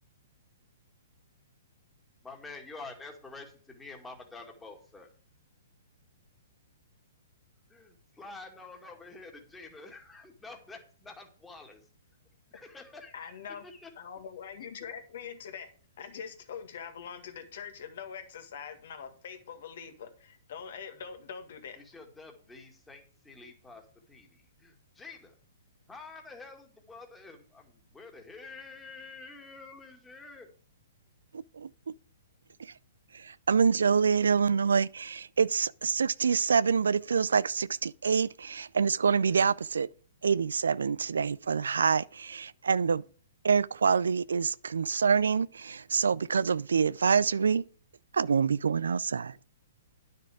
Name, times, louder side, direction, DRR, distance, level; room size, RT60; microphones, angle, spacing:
voice 1, 2.2-5.1 7.7-11.8 12.5-13.9 21.8-23.8 24.1-25.4 25.9-30.5, left 3 dB, 10° left, 2.1 m, -48 dB
voice 2, 13.1-13.7 13.9-15.7 16.0-21.8, left 7 dB, 60° left, 1.8 m, -43 dB
voice 3, 31.5-31.9 32.6-32.7 33.1-39.9 40.2-43.0 43.4-47.6 48.1-49.4, right 6 dB, 80° right, 0.3 m, -26 dB
9.7 x 6.6 x 4.9 m
hypercardioid pair, 130°, 0 cm